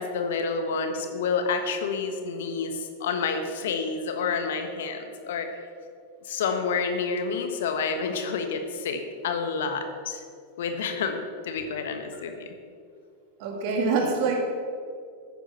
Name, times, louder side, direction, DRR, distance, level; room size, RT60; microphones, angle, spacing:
voice 1, 0.0-5.5 6.2-10.2 10.6-12.5 14.0-14.1, left 5 dB, 60° left, 6 dB, 1.3 m, -29 dB
voice 2, 13.4-14.5, right 4 dB, 50° right, 2 dB, 2.4 m, -25 dB
13.0 x 10.5 x 4.4 m, 2.3 s
figure-of-eight pair, 90°, 0 cm